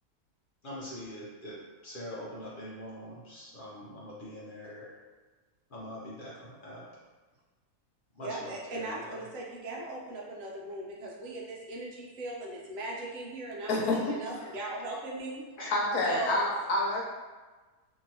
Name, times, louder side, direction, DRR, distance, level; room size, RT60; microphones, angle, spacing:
voice 1, 0.6-5.0 5.7-6.9 8.1-9.2 14.4-14.5 15.6-15.8, equal, 60° left, -6 dB, 0.5 m, -43 dB
voice 2, 8.2-15.4 16.1-16.5, right 2 dB, 65° right, -3 dB, 1.0 m, -38 dB
voice 3, 15.7-17.0, left 2 dB, 80° left, -2 dB, 1.1 m, -27 dB
2.8 x 2.7 x 2.7 m, 1.3 s
omnidirectional pair, 1.6 m